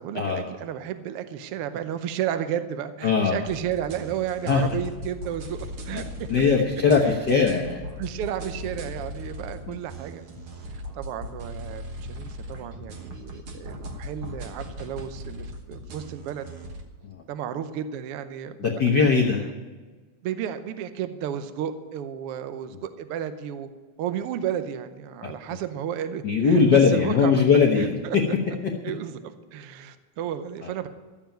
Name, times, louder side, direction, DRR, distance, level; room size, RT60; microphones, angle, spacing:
voice 1, 0.0-6.5 7.0-7.2 8.0-10.2 10.7-11.8 12.1-16.5 17.3-18.6 20.2-23.7 24.0-27.4 27.8-28.2 28.8-30.9, right 9 dB, 75° right, 10 dB, 1.3 m, -32 dB
voice 2, 3.0-3.4 4.5-4.6 5.9-6.0 6.3-7.8 9.7-9.8 18.6-19.4 26.2-28.2, left 5 dB, 65° left, -1 dB, 1.0 m, -20 dB
sound 1, 3.4-16.8, equal, 55° right, 1.8 m, -38 dB
13.0 x 7.3 x 9.0 m, 1.3 s
omnidirectional pair, 3.5 m